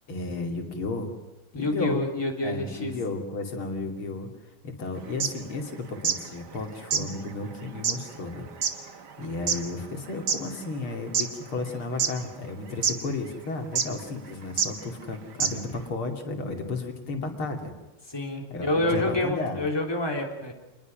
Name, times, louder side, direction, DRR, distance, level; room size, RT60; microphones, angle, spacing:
voice 1, 0.1-1.1 1.5-2.0 2.4-4.3 4.6-8.9 9.2-17.7 18.5-19.6, left 3 dB, 75° left, 3 dB, 3.6 m, -33 dB
voice 2, 1.5-2.9 18.1-20.5, left 1 dB, 10° left, 1 dB, 3.5 m, -28 dB
sound 1, 5.1-6.3 6.5-6.6 6.9-10.5 10.9-11.7 12.0-12.5 12.8-13.0 13.7-14.0 14.6-14.7 15.0-15.1 15.4-15.8, right 6 dB, 55° right, 2.1 m, -27 dB
27.0 x 20.5 x 6.3 m, 1.0 s
omnidirectional pair, 2.3 m